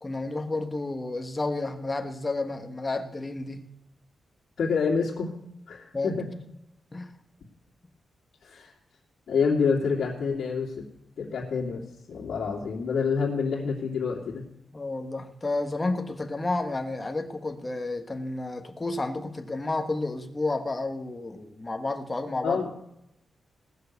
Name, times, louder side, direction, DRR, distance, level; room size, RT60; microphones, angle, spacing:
voice 1, 0.0-3.6 5.9-6.2 6.9-7.1 14.7-22.7, left 2 dB, 20° left, 7 dB, 1.4 m, -31 dB
voice 2, 4.6-5.3 5.7-6.3 8.4-8.7 9.3-10.8 11.2-11.8 12.1-14.4 22.4-22.7, left 5 dB, 75° left, -4 dB, 2.7 m, -27 dB
18.5 x 6.7 x 8.1 m, 0.84 s
wide cardioid pair, 115°, 0 cm